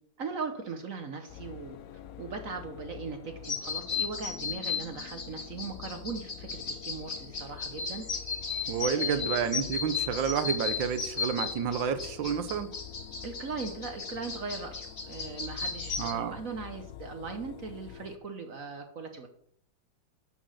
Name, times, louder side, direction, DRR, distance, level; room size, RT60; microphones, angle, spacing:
voice 1, 0.2-1.8 2.2-8.0 8.8-9.3 13.2-19.3, right 4 dB, 55° right, 6 dB, 1.2 m, -39 dB
sound 1, 1.3-18.2, left 10 dB, 70° left, 0.8 m, -47 dB
sound 2, 3.4-16.1, left 5 dB, 35° left, 1.3 m, -35 dB
voice 2, 8.7-12.7 16.0-16.4, right 7 dB, 80° right, 11 dB, 1.5 m, -30 dB
9.2 x 6.0 x 6.4 m, 0.69 s
omnidirectional pair, 2.1 m